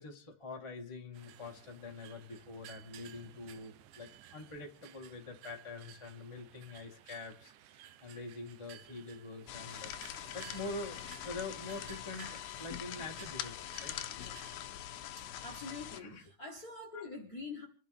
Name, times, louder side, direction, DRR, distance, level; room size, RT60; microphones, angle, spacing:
voice 1, 0.0-9.9 10.3-13.9 15.9-16.3 16.6-16.7 16.9-17.1, left 3 dB, 15° left, 1.2 m, -45 dB
sound 1, 1.1-14.7, right 12 dB, 75° right, 2.1 m, -56 dB
sound 2, 9.5-16.0, left 12 dB, 90° left, 2.7 m, -43 dB
voice 2, 15.2-17.7, left 3 dB, 35° left, 1.5 m, -45 dB
27.5 x 11.5 x 3.5 m
omnidirectional pair, 4.1 m